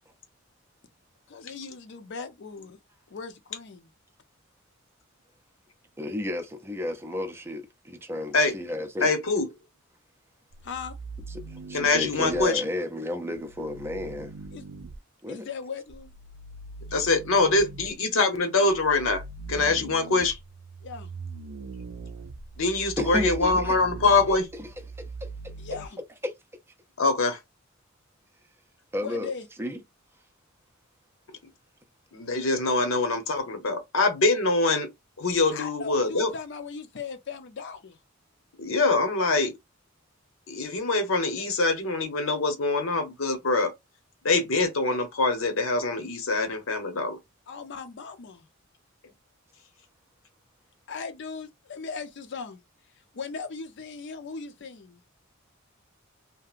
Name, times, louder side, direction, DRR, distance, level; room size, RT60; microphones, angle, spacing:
voice 1, 1.3-2.8 3.1-3.9 10.6-10.9 14.5-14.6 15.3-16.1 20.8-21.1 25.6-26.0 28.9-29.5 35.5-38.0 47.5-48.5 50.9-52.6 53.1-55.0, left 5 dB, 60° left, 0.5 m, -38 dB
voice 2, 6.0-9.1 11.5-14.3 15.2-15.5 23.0-23.8 25.2-25.3 26.2-26.3 28.9-29.3 29.6-29.8, left 1 dB, 10° right, 0.4 m, -32 dB
voice 3, 9.0-9.5 11.7-12.6 16.9-19.2 19.5-20.4 22.6-24.5 27.0-27.4 32.1-34.9 35.2-36.3 38.6-39.6 40.5-43.7 44.2-47.2, left 3 dB, 80° left, 0.8 m, -24 dB
sound 1, 10.5-12.4 13.4-15.0 15.9-17.9 18.7-25.9, right 4 dB, 75° right, 0.4 m, -41 dB
2.8 x 2.6 x 2.4 m
head